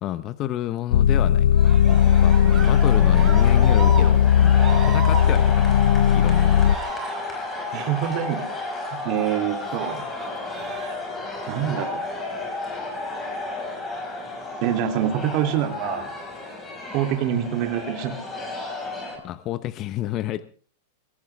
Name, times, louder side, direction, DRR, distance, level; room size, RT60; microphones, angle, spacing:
voice 1, 0.0-4.6 4.9-6.7 19.2-20.4, left 13 dB, 30° left, 14 dB, 0.7 m, -30 dB
sound 1, 0.9-6.8, left 9 dB, 75° left, 0.7 m, -17 dB
Cheering, 1.4-13.1 14.4-15.3 16.0-16.6, right 4 dB, 15° right, 4.2 m, -37 dB
sound 2, 1.9-19.2, left 2 dB, 15° left, 5.4 m, -33 dB
voice 2, 7.7-8.5 8.9-10.0 11.5-12.0 14.6-16.1 16.9-18.2, right 10 dB, 40° right, 5 dB, 2.8 m, -25 dB
22.0 x 18.0 x 3.5 m, 0.41 s
supercardioid pair, 160°, 0 cm